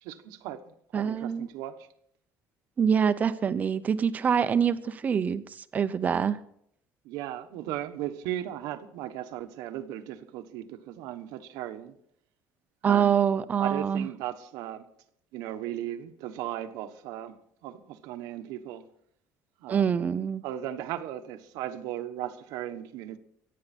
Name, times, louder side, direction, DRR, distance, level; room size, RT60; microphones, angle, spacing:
voice 1, 0.0-1.9 7.0-12.0 12.8-13.2 13.6-14.8 15.3-18.9 19.6-19.9 20.4-23.2, right 12 dB, 80° right, 1.2 m, -37 dB
voice 2, 0.9-1.5 2.8-6.4 12.8-14.1 19.7-20.4, right 7 dB, 25° right, 0.7 m, -25 dB
24.5 x 9.5 x 4.3 m
cardioid pair, 165°, 6 cm